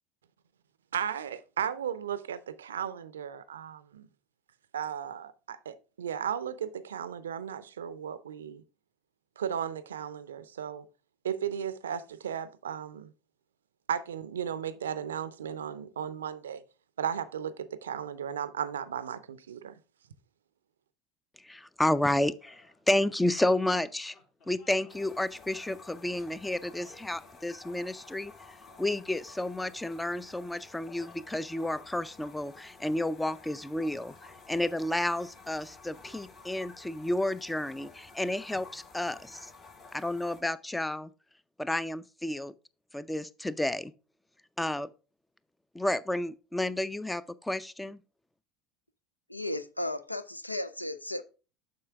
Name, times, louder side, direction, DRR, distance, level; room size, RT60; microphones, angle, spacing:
voice 1, 0.9-4.1 4.7-8.6 9.4-10.9 11.2-13.1 13.9-16.6 17.0-19.7, right 8 dB, 75° right, 0.5 m, -35 dB
voice 2, 21.4-24.2 24.5-28.3 28.8-39.5 39.9-41.1 41.6-42.5 42.9-43.9 44.6-44.9 45.7-48.0, left 1 dB, 10° left, 0.4 m, -31 dB
sound 1, 22.2-28.5, left 3 dB, 50° left, 2.4 m, -61 dB
sound 2, 24.9-40.4, left 4 dB, 35° left, 1.4 m, -52 dB
voice 3, 49.3-51.2, left 1 dB, 90° left, 0.4 m, -35 dB
7.6 x 5.5 x 3.5 m
figure-of-eight pair, 70°, 0 cm